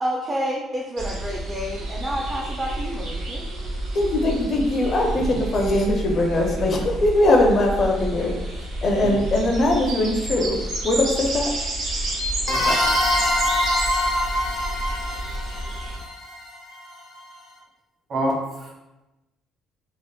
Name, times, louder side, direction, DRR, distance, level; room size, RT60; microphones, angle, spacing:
voice 1, 0.0-3.5, equal, 20° right, -1 dB, 0.3 m, -29 dB
sound 1, 1.0-16.0, right 1 dB, 85° right, 0.7 m, -30 dB
voice 2, 3.9-8.3 8.8-10.6 10.8-11.5, left 1 dB, 40° left, 1 dB, 0.4 m, -21 dB
sound 2, 12.5-17.0, left 1 dB, 80° left, 0.7 m, -24 dB
voice 3, 18.1-18.7, right 1 dB, 55° right, -3 dB, 0.9 m, -26 dB
3.3 x 2.0 x 2.2 m, 1.0 s
cardioid pair, 120°, 0 cm